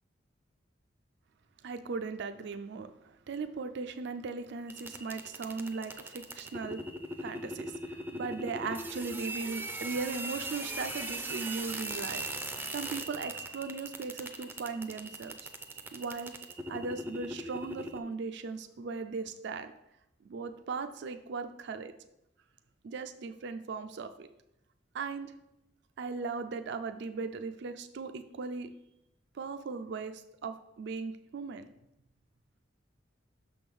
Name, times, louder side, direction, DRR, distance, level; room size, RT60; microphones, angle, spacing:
voice 1, 1.6-6.8 7.2-12.2 12.7-15.5 15.9-16.3 16.7-19.7 20.2-21.9 22.8-24.3 24.9-25.3 26.0-28.7 29.3-31.6, right 4 dB, 65° right, 9 dB, 0.4 m, -38 dB
sound 1, 4.7-18.0, right 1 dB, 10° right, 0.5 m, -40 dB
6.2 x 3.6 x 6.0 m, 0.86 s
head